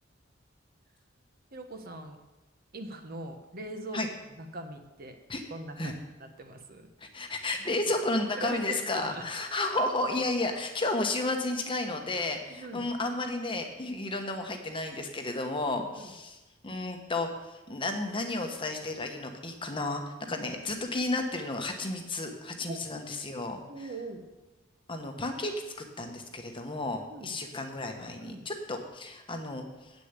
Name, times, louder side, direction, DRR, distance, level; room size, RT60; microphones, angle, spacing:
voice 1, 1.5-2.2 2.7-4.0 4.3-5.2 5.5-5.9 6.2-6.9 8.4-9.2 12.5-12.8 15.9-16.1 20.3-20.5 22.7-22.8 23.7-24.2 27.1-27.3 28.2-28.5, right 2 dB, 50° right, 6 dB, 1.0 m, -41 dB
voice 2, 7.0-16.4 16.6-23.6 24.9-29.9, left 2 dB, 25° left, 4 dB, 1.1 m, -32 dB
8.4 x 6.6 x 8.2 m, 1.1 s
head